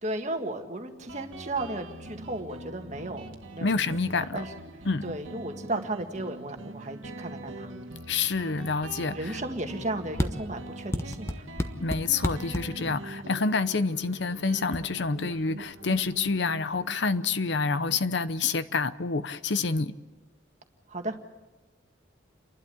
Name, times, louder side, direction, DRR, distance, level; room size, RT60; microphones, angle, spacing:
voice 1, 0.0-3.7 4.2-4.5 5.0-7.7 9.1-11.5 20.9-21.2, right 2 dB, 35° right, 5 dB, 1.8 m, -34 dB
Guitar, 1.1-18.3, right 1 dB, 85° right, 1.8 m, -43 dB
voice 2, 3.6-4.4 4.9-5.1 8.1-9.3 11.8-19.9, left 4 dB, 60° left, 13 dB, 0.7 m, -28 dB
sound 1, 10.1-10.3 10.9-12.6 14.0-14.4 14.7-14.9 15.2-16.4, left 1 dB, 15° left, 0.9 m, -31 dB
29.5 x 12.0 x 8.5 m, 1.2 s
head